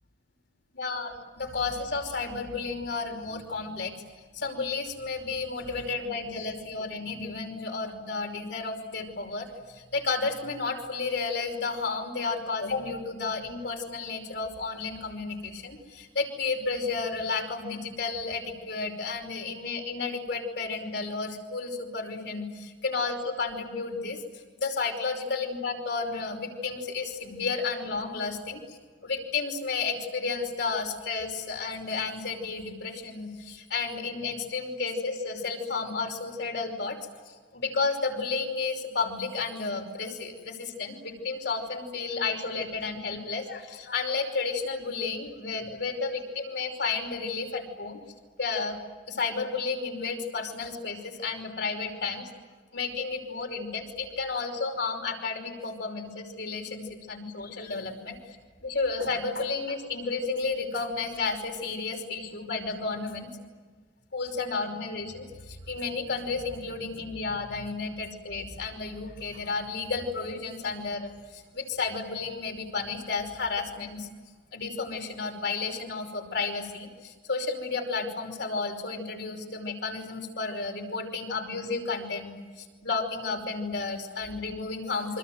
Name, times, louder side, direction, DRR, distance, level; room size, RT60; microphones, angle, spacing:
voice 1, 0.7-3.9 4.3-24.2 24.6-37.0 37.2-48.0 48.4-48.8 49.1-52.3 52.7-58.4 58.6-63.3 64.1-74.1 74.5-85.2, left 4 dB, 65° left, 3 dB, 5.5 m, -32 dB
28.0 x 25.5 x 8.0 m, 1.4 s
head